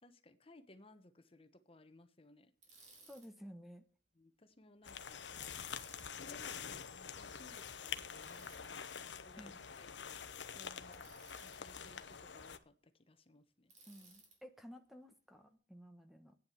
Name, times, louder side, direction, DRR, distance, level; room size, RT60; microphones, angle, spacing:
voice 1, 0.0-2.5 4.1-5.3 6.2-11.1 11.4-13.7, left 2 dB, 30° left, 9 dB, 1.2 m, -62 dB
Bicycle, 2.6-3.3 5.5-6.2 8.2-8.7 10.9-11.6 13.7-14.4, right 3 dB, 45° right, 4.1 m, -61 dB
voice 2, 3.1-3.8 9.4-9.6 13.9-16.4, equal, ahead, 7 dB, 1.1 m, -54 dB
sound 1, 4.8-12.6, left 7 dB, 90° left, 1.0 m, -47 dB
11.5 x 9.6 x 7.1 m, 0.39 s
head